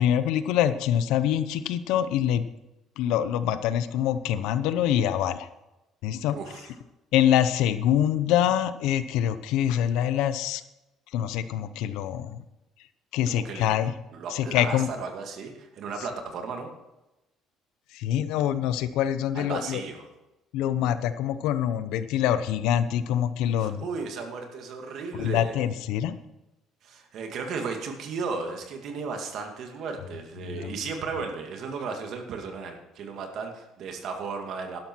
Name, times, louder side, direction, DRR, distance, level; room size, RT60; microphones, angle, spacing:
voice 1, 0.0-2.4 3.0-5.5 6.0-6.4 7.1-10.6 11.1-12.4 13.1-13.9 14.3-14.9 17.9-19.8 20.5-23.9 25.1-26.1 30.4-30.8, left 10 dB, 85° left, 12 dB, 0.8 m, -25 dB
voice 2, 6.3-6.7 13.3-13.7 14.1-16.7 19.3-20.0 23.6-25.5 26.8-34.8, right 5 dB, 60° right, 4 dB, 2.1 m, -35 dB
12.0 x 11.5 x 4.6 m, 0.97 s
cardioid pair, 130°, 0 cm